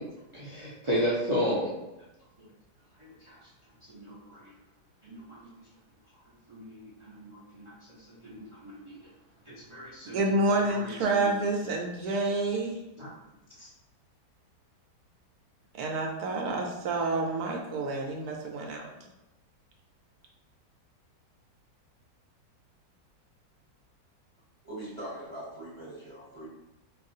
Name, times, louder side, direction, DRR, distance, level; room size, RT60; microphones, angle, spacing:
voice 1, 0.3-1.7 3.0-3.4 3.9-4.5 5.0-5.5 6.5-7.7 8.1-8.7 9.5-10.2 10.6-11.3 13.0-13.1 13.6-13.7, equal, 55° right, -7 dB, 0.3 m, -34 dB
voice 2, 10.1-12.8 15.8-18.8, right 2 dB, 70° right, 1 dB, 1.1 m, -28 dB
voice 3, 24.6-26.5, right 1 dB, 25° right, -8 dB, 0.8 m, -41 dB
4.5 x 2.4 x 2.7 m, 0.97 s
omnidirectional pair, 1.8 m